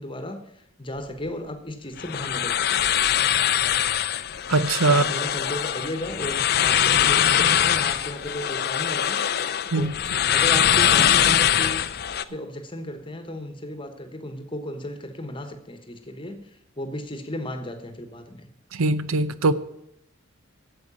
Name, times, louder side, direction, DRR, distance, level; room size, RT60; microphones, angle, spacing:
voice 1, 0.0-2.9 4.9-9.3 9.7-9.9 10.3-11.8 12.1-16.4 16.8-18.5, left 1 dB, 25° left, 1.2 m, -35 dB
sound 1, 2.0-12.2, left 10 dB, 50° left, 0.5 m, -22 dB
voice 2, 4.5-5.1 9.7-9.9 18.7-19.5, right 3 dB, 85° right, 0.7 m, -21 dB
8.8 x 7.9 x 8.7 m
head